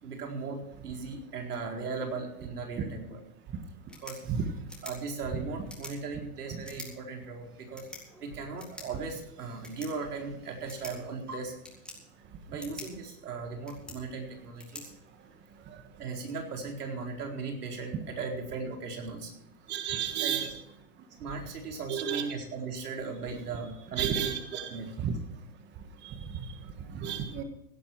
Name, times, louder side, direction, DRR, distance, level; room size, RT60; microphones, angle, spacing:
voice 1, 0.0-3.2 4.0-4.4 4.8-7.9 8.2-11.6 12.5-14.9 16.0-19.3 20.2-20.5 21.2-24.3 24.7-24.9, right 4 dB, 90° right, 1 dB, 4.4 m, -37 dB
sound 1, 3.7-15.7, left 2 dB, ahead, 3.7 m, -50 dB
voice 2, 19.7-20.5 21.9-22.2 24.0-24.7 25.0-25.1 26.0-26.2 26.9-27.4, right 9 dB, 25° right, 7 dB, 1.5 m, -31 dB
17.0 x 11.0 x 4.6 m, 0.78 s
hypercardioid pair, 135°, 44 cm